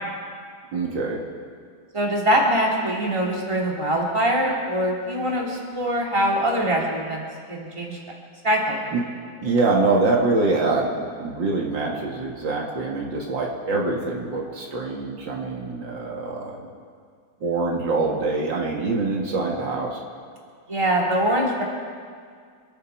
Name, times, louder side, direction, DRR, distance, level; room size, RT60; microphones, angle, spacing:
voice 1, 0.7-1.2 8.9-9.0 9.4-16.7 17.4-20.0, right 3 dB, 80° right, -1 dB, 2.7 m, -24 dB
voice 2, 1.9-7.2 7.5-8.0 8.4-8.8 20.7-21.6, equal, 15° right, -2 dB, 2.6 m, -23 dB
27.5 x 11.0 x 4.6 m, 2.1 s
omnidirectional pair, 2.0 m